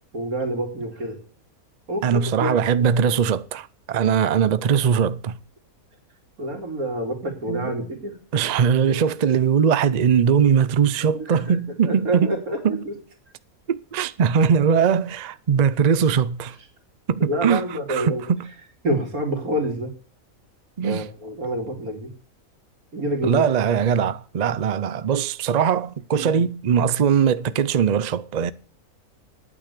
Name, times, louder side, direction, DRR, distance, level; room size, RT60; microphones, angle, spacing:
voice 1, 0.1-1.2 1.9-2.6 3.1-3.2 4.5-4.6 6.4-8.6 8.9-9.0 9.3-9.4 11.1-11.6 11.8-12.9 17.2-18.2 18.8-19.9 20.8-22.1 22.9-23.4 26.1-26.4, right 1 dB, 90° right, 3.2 m, -28 dB
voice 2, 2.0-5.4 7.5-7.7 8.3-12.3 12.6-12.8 13.7-16.6 17.1-18.5 20.8-21.1 23.2-28.5, right 7 dB, 50° right, 0.5 m, -21 dB
9.3 x 8.8 x 8.4 m
omnidirectional pair, 1.5 m